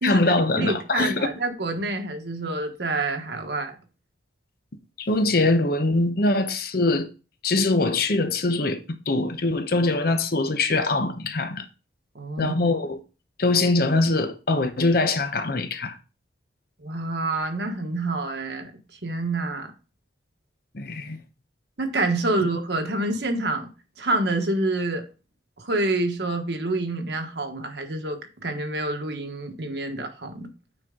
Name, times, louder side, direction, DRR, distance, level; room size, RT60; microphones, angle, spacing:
voice 1, 0.0-1.3 5.0-7.1 7.4-11.7 12.4-13.0 13.4-16.0 20.7-21.2, left 2 dB, 55° left, 0.8 m, -23 dB
voice 2, 0.6-3.7 12.1-12.5 16.8-18.7 19.0-19.7 21.8-23.7 24.0-25.0 25.6-30.5, right 2 dB, 65° right, 1.3 m, -27 dB
8.9 x 4.6 x 3.7 m
head